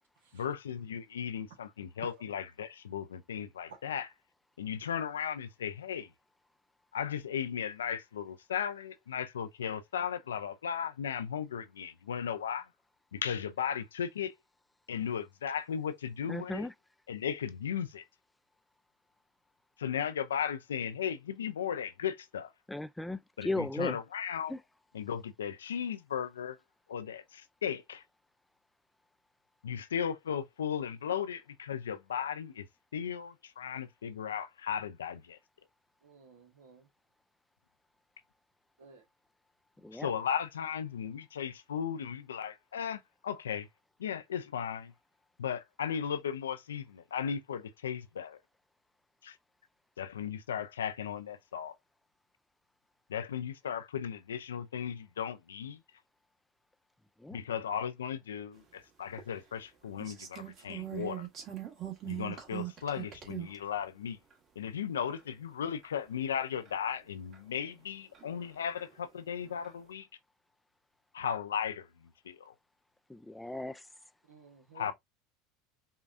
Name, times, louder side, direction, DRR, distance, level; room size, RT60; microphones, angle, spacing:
voice 1, 0.3-4.1 4.6-6.1 6.9-12.7 13.1-14.3 14.9-16.7 17.1-18.0 19.8-22.5 23.4-24.5 24.9-26.6 26.9-28.0 29.6-32.7 32.9-35.4 39.9-43.7 44.0-44.9 45.4-48.4 49.2-49.4 50.0-51.7 53.1-55.8 57.3-61.3 62.0-64.2 64.6-70.1 71.1-72.5 74.7-74.9, left 8 dB, 85° left, 0.4 m, -36 dB
voice 2, 16.3-16.7 22.7-24.0 24.5-24.6 39.8-40.1 57.2-57.4 73.1-73.8, left 2 dB, 5° left, 0.3 m, -36 dB
voice 3, 36.0-36.9 38.8-39.0 74.2-74.9, right 6 dB, 80° right, 1.2 m, -53 dB
sound 1, 59.2-59.3 60.0-63.6 64.3-64.4 65.2-65.3 65.8-65.9 66.7-66.8 67.3-67.4 68.1-68.9 69.4-69.7, right 13 dB, 45° right, 1.4 m, -41 dB
5.5 x 2.4 x 2.5 m
hypercardioid pair, 80°, 0 cm